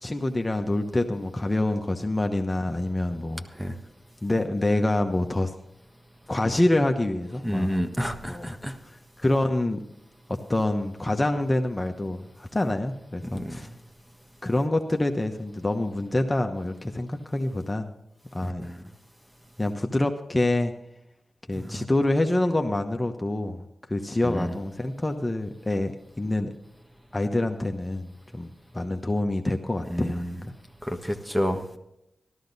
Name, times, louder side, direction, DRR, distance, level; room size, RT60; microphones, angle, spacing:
voice 1, 0.0-3.4 4.2-5.5 6.3-7.8 8.2-8.6 9.2-9.8 10.3-13.7 14.4-17.9 18.3-18.7 19.6-20.7 21.5-23.6 23.9-25.9 26.2-26.5 27.1-28.1 28.3-30.2, left 1 dB, 25° left, 5 dB, 1.1 m, -26 dB
voice 2, 7.4-8.7 13.2-13.6 18.4-18.8 21.6-21.8 24.2-24.6 29.9-30.4 30.8-31.8, equal, 5° right, 6 dB, 1.5 m, -30 dB
13.5 x 12.5 x 4.1 m, 0.86 s
cardioid pair, 45°, 0 cm